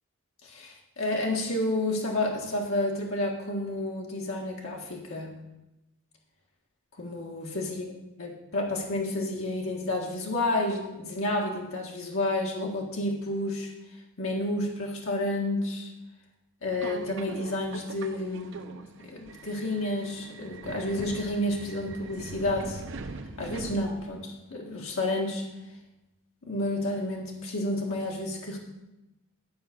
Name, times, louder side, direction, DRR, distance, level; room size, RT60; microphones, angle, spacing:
voice 1, 0.4-5.3 7.0-7.8 8.2-13.7 14.2-15.9 16.6-22.8 23.4-25.4 26.4-28.6, left 1 dB, 65° left, -1 dB, 1.5 m, -30 dB
Subway metro underground, 16.7-24.3, right 3 dB, 55° right, 0.6 m, -42 dB
11.0 x 4.7 x 6.8 m, 0.96 s
head